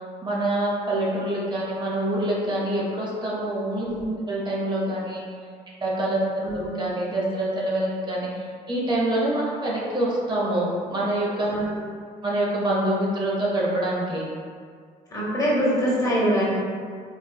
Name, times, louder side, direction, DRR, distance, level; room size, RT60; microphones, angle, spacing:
voice 1, 0.2-3.8 4.3-5.2 5.8-11.5 12.2-14.3, right 1 dB, 25° right, -5 dB, 0.7 m, -26 dB
voice 2, 11.5-11.8 15.1-16.6, equal, 20° left, -8 dB, 1.0 m, -24 dB
4.0 x 2.2 x 2.2 m, 2.1 s
cardioid pair, 110°, 17 cm